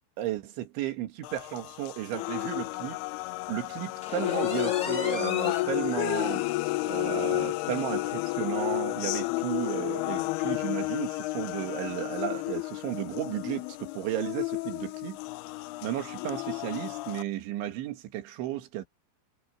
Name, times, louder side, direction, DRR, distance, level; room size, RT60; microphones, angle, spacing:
voice 1, 0.2-3.0 3.5-6.4 6.8-15.2 15.8-18.9, right 12 dB, 85° right, 4.2 m, -34 dB
sound 1, 1.2-17.2, left 19 dB, 85° left, 2.3 m, -31 dB
sound 2, 4.0-5.7 6.2-6.3 6.7-6.8 7.2-7.3 8.2-8.3, left 5 dB, 40° left, 1.4 m, -38 dB
omnidirectional pair, 5.2 m